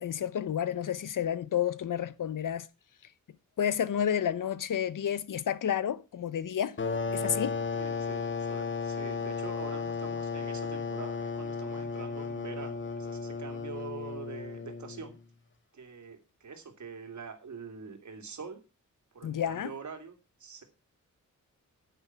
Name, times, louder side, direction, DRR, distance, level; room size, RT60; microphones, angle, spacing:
voice 1, 0.0-2.7 3.6-6.8 7.1-7.6 19.2-19.7, left 9 dB, 75° left, 0.9 m, -30 dB
sound 1, 6.8-15.2, left 5 dB, 35° left, 1.5 m, -34 dB
voice 2, 7.7-15.2 15.7-18.6 19.1-20.6, right 5 dB, 60° right, 2.6 m, -45 dB
9.7 x 9.3 x 5.9 m
wide cardioid pair, 125°, 32 cm